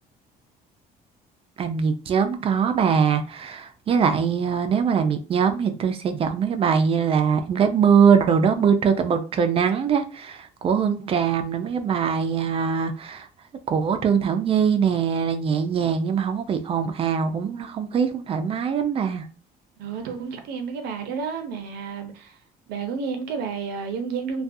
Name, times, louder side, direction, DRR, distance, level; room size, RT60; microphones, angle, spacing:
voice 1, 1.6-13.3 13.7-19.3, right 6 dB, 35° right, 0.4 m, -22 dB
voice 2, 19.8-22.4 22.7-24.4, right 5 dB, 80° right, 0.6 m, -31 dB
2.4 x 2.3 x 2.6 m
cardioid pair, 125°, 16 cm